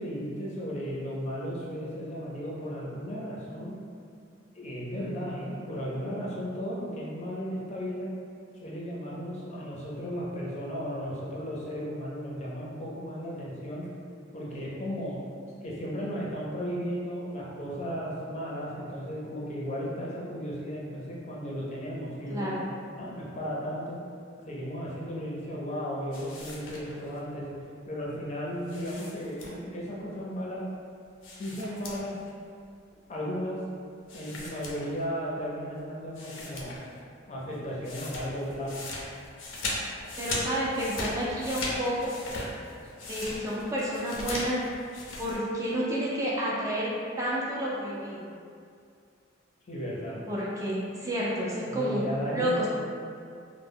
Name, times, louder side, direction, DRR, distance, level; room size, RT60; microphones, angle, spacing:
voice 1, 0.0-3.7 4.5-8.1 8.6-13.9 14.3-15.2 15.6-22.7 23.0-24.0 24.5-27.4 27.9-30.6 31.4-32.1 33.1-33.6 34.1-36.8 37.3-38.8 49.7-50.2 51.7-52.7, equal, 35° left, -5 dB, 0.5 m, -35 dB
voice 2, 22.3-22.7 40.2-42.1 43.1-44.6 45.2-48.3 50.3-52.0 52.3-52.7, equal, 15° right, -6 dB, 0.3 m, -30 dB
sound 1, 26.1-27.2 28.6-29.8 31.2-32.3 32.6-32.7 34.1-35.3 35.8-35.9 36.1-37.0 37.3-45.4, left 2 dB, 90° left, 0.5 m, -38 dB
2.1 x 2.0 x 3.4 m, 2.3 s
head